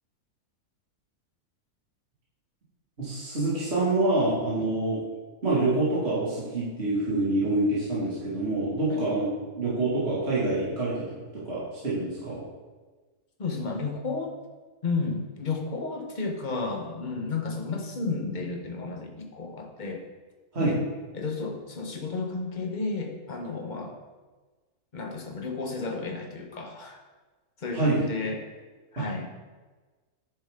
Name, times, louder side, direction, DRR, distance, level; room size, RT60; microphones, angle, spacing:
voice 1, 3.0-5.0 5.4-9.3 9.6-12.4 20.5-20.8 27.7-28.1 29.0-29.1, right 2 dB, 40° right, -9 dB, 2.6 m, -26 dB
voice 2, 13.4-14.3 14.8-20.0 20.6-20.8 21.1-24.0 24.9-27.0 27.6-28.4 28.9-29.3, left 4 dB, 35° left, 2 dB, 1.2 m, -32 dB
10.5 x 7.2 x 3.7 m, 1.3 s
omnidirectional pair, 1.6 m